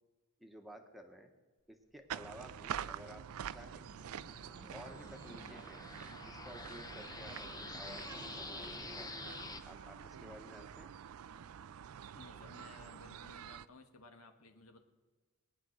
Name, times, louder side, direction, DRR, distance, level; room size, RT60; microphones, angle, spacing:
voice 1, 0.4-1.3 1.7-3.9 4.7-5.8 6.1-10.9, equal, ahead, 4 dB, 1.1 m, -54 dB
sound 1, 2.1-13.7, right 9 dB, 75° right, 0.4 m, -47 dB
sound 2, 2.5-9.6, left 3 dB, 15° left, 0.7 m, -49 dB
Wind instrument woodwind instrument, 4.5-12.8, right 2 dB, 35° right, 1.0 m, -61 dB
voice 2, 5.3-5.6 12.1-14.8, left 2 dB, 80° left, 5 dB, 1.5 m, -57 dB
20.0 x 9.6 x 6.4 m, 1.3 s
head